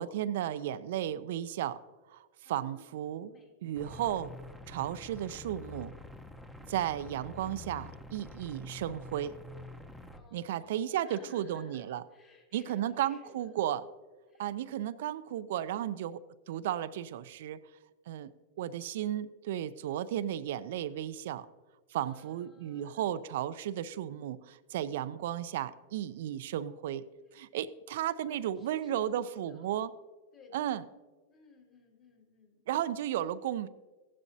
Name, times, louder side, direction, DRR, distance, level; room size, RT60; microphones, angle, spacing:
voice 1, 0.0-1.8 2.1-3.3 3.6-4.3 4.7-5.9 6.6-9.3 10.3-12.0 12.5-13.8 14.4-16.2 16.5-17.6 18.1-18.3 18.6-21.5 21.9-27.0 27.3-29.9 30.5-30.8 32.7-33.7, right 11 dB, 65° right, 14 dB, 0.4 m, -34 dB
voice 2, 2.4-3.5 10.1-13.6 14.3-14.6 21.9-23.3 28.3-29.8 30.3-30.8 31.3-32.8, left 4 dB, 35° left, -1 dB, 2.5 m, -57 dB
sound 1, 3.7-10.2, left 2 dB, ahead, 0.9 m, -47 dB
14.5 x 11.0 x 2.7 m, 1.3 s
hypercardioid pair, 105°, 0 cm